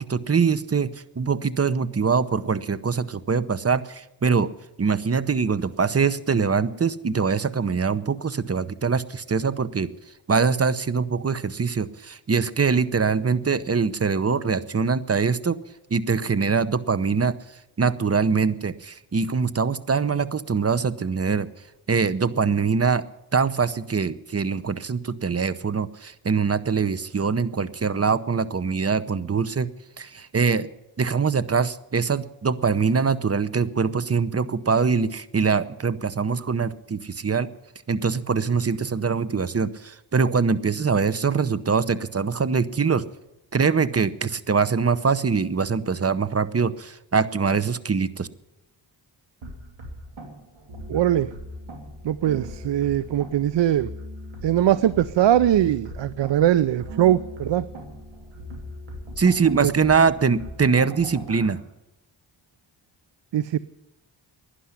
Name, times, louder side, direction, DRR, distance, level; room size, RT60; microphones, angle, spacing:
voice 1, 0.0-4.5 4.8-9.9 10.3-15.6 15.9-17.3 17.8-21.5 21.9-23.0 23.3-29.7 30.0-30.7 31.0-37.5 37.9-43.0 43.5-48.3 59.2-61.6, right 5 dB, 30° right, 15 dB, 0.7 m, -23 dB
sound 1, 49.4-61.5, equal, 85° right, 2.8 m, -39 dB
voice 2, 50.9-51.3 52.0-53.9 54.4-57.7 59.6-59.7 63.3-63.6, right 11 dB, 65° right, 18 dB, 0.5 m, -21 dB
11.5 x 9.9 x 9.6 m, 0.93 s
cardioid pair, 55°, 46 cm